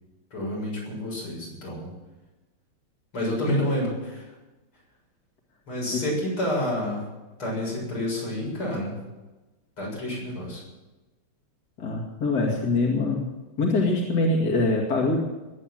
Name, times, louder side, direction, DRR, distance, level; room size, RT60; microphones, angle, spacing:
voice 1, 0.3-1.9 3.1-4.3 5.7-7.0 7.4-9.0 9.8-10.6, left 1 dB, 85° left, -3 dB, 8.2 m, -29 dB
voice 2, 11.8-13.3 13.6-15.2, left 2 dB, 50° left, -1 dB, 2.8 m, -24 dB
21.0 x 9.1 x 7.7 m, 1.1 s
omnidirectional pair, 2.3 m